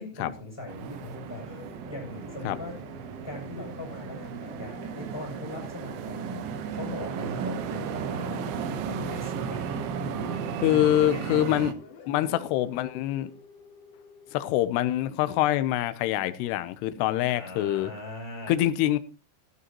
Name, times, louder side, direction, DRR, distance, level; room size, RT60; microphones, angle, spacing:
voice 1, 0.0-2.7 3.2-6.4 6.7-11.7 12.1-12.3 17.3-18.6, left 1 dB, 5° right, 6.3 m, -40 dB
sound 1, 0.7-11.7, right 7 dB, 90° right, 3.4 m, -35 dB
sound 2, 0.8-14.5, left 4 dB, 60° left, 3.3 m, -50 dB
voice 2, 10.6-11.7 12.1-13.3 14.3-17.9 18.5-19.0, left 13 dB, 80° left, 2.6 m, -25 dB
13.5 x 12.5 x 3.0 m
omnidirectional pair, 5.2 m